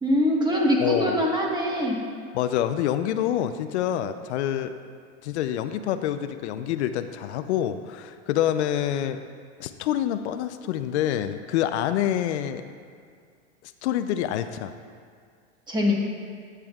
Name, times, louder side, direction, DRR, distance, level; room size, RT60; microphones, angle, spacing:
voice 1, 0.0-2.0 15.7-15.9, equal, 10° right, -2 dB, 1.3 m, -23 dB
voice 2, 0.8-1.2 2.3-4.8 5.2-9.2 9.6-12.6 13.8-14.7, left 11 dB, 75° left, 10 dB, 0.5 m, -26 dB
12.0 x 8.2 x 2.4 m, 2.1 s
supercardioid pair, 125°, 35 cm